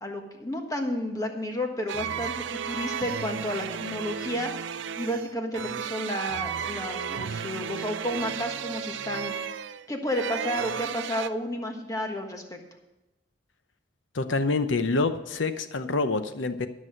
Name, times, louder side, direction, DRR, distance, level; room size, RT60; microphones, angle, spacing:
voice 1, 0.0-4.5 5.0-9.5 9.9-12.4, left 1 dB, 15° left, 3 dB, 1.4 m, -31 dB
sound 1, 1.9-11.3, right 7 dB, 70° right, 0.4 m, -34 dB
voice 2, 14.1-16.7, left 3 dB, 75° left, 10 dB, 0.8 m, -26 dB
12.5 x 6.3 x 7.6 m, 1.0 s
head